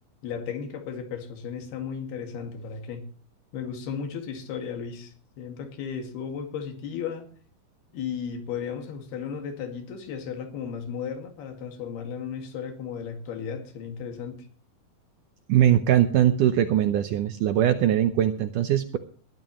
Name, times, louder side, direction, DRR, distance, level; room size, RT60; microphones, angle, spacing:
voice 1, 0.2-3.1 3.5-7.3 7.9-14.5, left 7 dB, 80° left, 4.0 m, -35 dB
voice 2, 15.5-19.0, right 11 dB, 75° right, 1.9 m, -21 dB
21.0 x 13.0 x 3.1 m
omnidirectional pair, 4.5 m